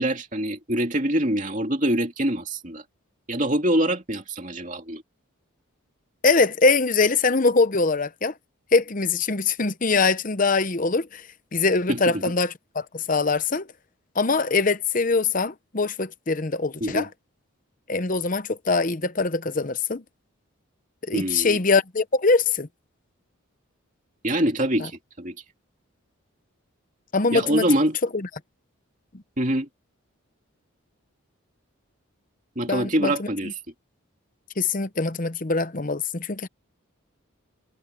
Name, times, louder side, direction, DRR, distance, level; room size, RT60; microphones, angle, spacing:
voice 1, 0.0-2.8 3.3-5.0 11.9-12.2 16.8-17.1 21.1-21.6 24.2-24.9 25.2-25.3 27.3-28.0 29.4-29.7 32.6-33.5, right 1 dB, 35° right, 2.7 m, -24 dB
voice 2, 6.2-8.3 8.7-11.2 11.5-13.7 14.1-17.1 17.9-20.0 21.1-22.7 27.1-27.7 28.1-28.3 32.7-33.5 34.6-36.5, left 4 dB, 40° left, 0.8 m, -23 dB
head